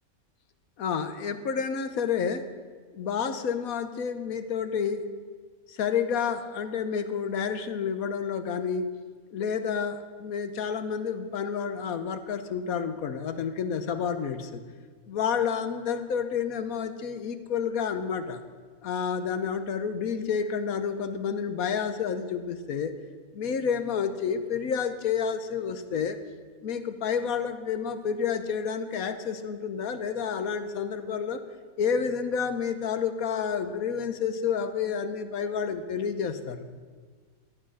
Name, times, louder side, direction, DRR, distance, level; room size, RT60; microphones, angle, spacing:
voice 1, 0.8-2.5 2.9-5.0 5.7-8.9 9.3-14.6 15.1-18.4 18.8-22.9 23.3-26.2 26.6-31.4 31.8-36.7, left 7 dB, 80° left, 10 dB, 1.4 m, -29 dB
15.0 x 10.5 x 6.4 m, 1.5 s
omnidirectional pair, 1.5 m